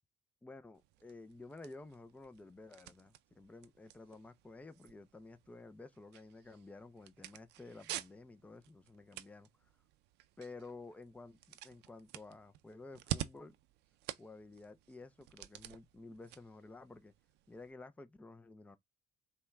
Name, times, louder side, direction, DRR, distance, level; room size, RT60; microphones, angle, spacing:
voice 1, 0.4-9.7 10.4-11.4 11.6-13.6 14.2-17.1 17.5-18.8, left 3 dB, 10° left, 0.4 m, -52 dB
sound 1, 0.8-17.7, right 13 dB, 85° right, 0.5 m, -49 dB
5.4 x 2.2 x 3.4 m
cardioid pair, 110°, 17 cm